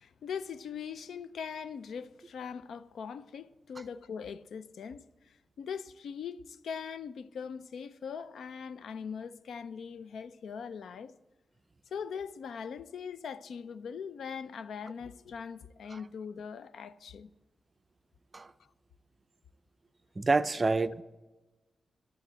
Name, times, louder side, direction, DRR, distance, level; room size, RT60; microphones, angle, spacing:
voice 1, 0.0-11.1 11.9-17.3, left 6 dB, 80° left, 0.5 m, -41 dB
voice 2, 20.2-21.0, right 3 dB, 30° right, 0.5 m, -27 dB
12.5 x 7.1 x 8.8 m
cardioid pair, 85°, 0 cm